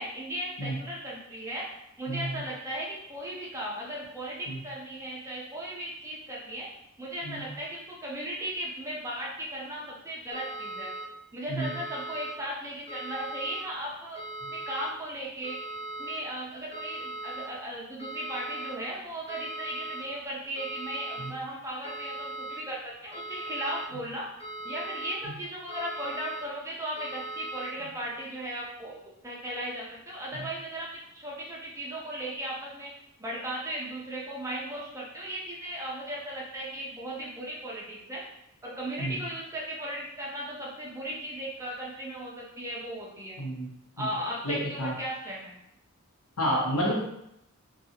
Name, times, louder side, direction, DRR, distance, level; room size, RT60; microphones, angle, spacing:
voice 1, 0.0-1.7 2.0-6.7 7.0-10.9 11.3-14.2 14.5-15.6 16.0-24.3 24.6-29.0 29.2-32.9 33.2-38.2 38.6-43.4 44.0-45.6, right 1 dB, 15° right, -4 dB, 0.5 m, -36 dB
sound 1, 10.3-11.0 11.6-12.3 12.9-13.6 14.2-14.9 15.4-16.2 16.7-17.4 18.0-18.7 19.3-20.0 20.6-21.3 21.8-22.6 23.1-23.9 24.4-25.1 25.7-26.4 27.0-27.7, right 2 dB, 25° left, 0.6 m, -39 dB
voice 2, 43.4-43.7 44.0-44.1 44.4-44.9 46.4-46.9, equal, 75° left, -3 dB, 0.8 m, -30 dB
2.7 x 2.3 x 2.7 m, 0.78 s
head